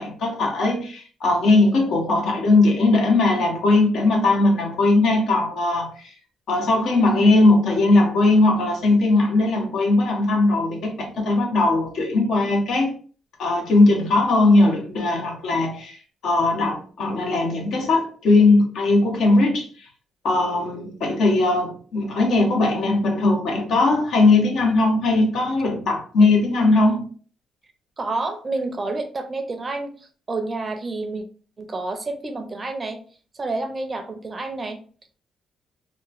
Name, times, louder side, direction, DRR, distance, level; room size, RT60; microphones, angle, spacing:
voice 1, 0.0-5.9 6.5-12.9 13.4-16.0 16.2-19.7 20.2-27.1, left 2 dB, 75° left, 0.8 m, -19 dB
voice 2, 28.0-31.2 31.6-33.0 33.3-34.8, right 3 dB, 30° right, 0.6 m, -29 dB
3.0 x 2.1 x 2.4 m
cardioid pair, 90°, 0 cm